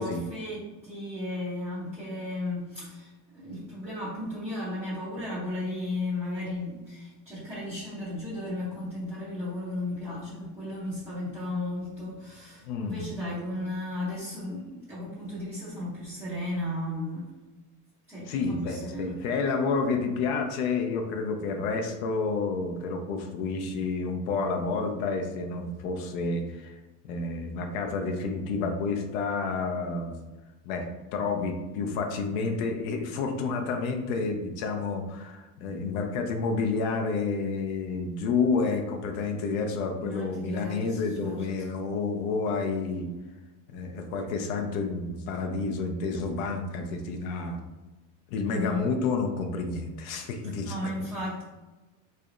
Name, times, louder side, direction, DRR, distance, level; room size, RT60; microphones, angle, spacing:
voice 1, 0.0-17.2 18.1-19.2 40.0-41.4 48.4-48.8 50.6-51.4, left 1 dB, 5° right, -12 dB, 0.4 m, -35 dB
voice 2, 12.6-13.0 18.3-30.2 30.6-43.1 43.7-47.6 48.3-50.9, left 4 dB, 65° left, 4 dB, 0.6 m, -30 dB
3.9 x 3.2 x 2.4 m, 1.1 s
cardioid pair, 170°, 45 cm